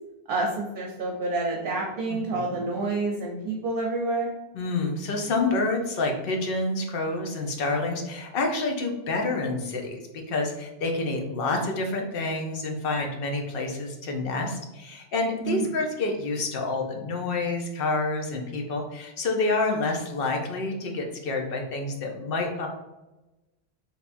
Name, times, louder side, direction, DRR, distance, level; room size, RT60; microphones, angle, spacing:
voice 1, 0.3-4.3 15.5-15.7, right 3 dB, 60° right, -1 dB, 0.7 m, -28 dB
voice 2, 2.1-2.5 4.5-10.0 10.3-22.7, left 3 dB, 65° left, 2 dB, 0.8 m, -28 dB
3.3 x 2.8 x 2.5 m, 1.0 s
omnidirectional pair, 1.1 m